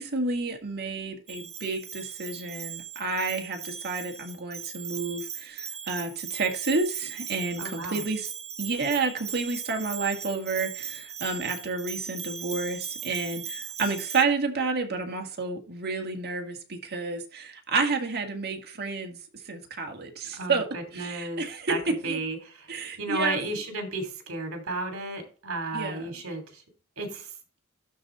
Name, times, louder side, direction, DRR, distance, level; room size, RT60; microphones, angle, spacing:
voice 1, 0.0-8.3 8.6-19.2 19.5-20.7 20.9-21.7 22.0-22.2 22.7-23.4 25.7-26.0, right 4 dB, 50° right, 1.8 m, -30 dB
Bell, 1.3-14.2, right 8 dB, 30° right, 1.0 m, -39 dB
voice 2, 7.6-8.0 20.4-22.7 23.0-26.6 27.0-27.3, right 2 dB, 70° right, 2.8 m, -33 dB
12.0 x 4.2 x 3.7 m
head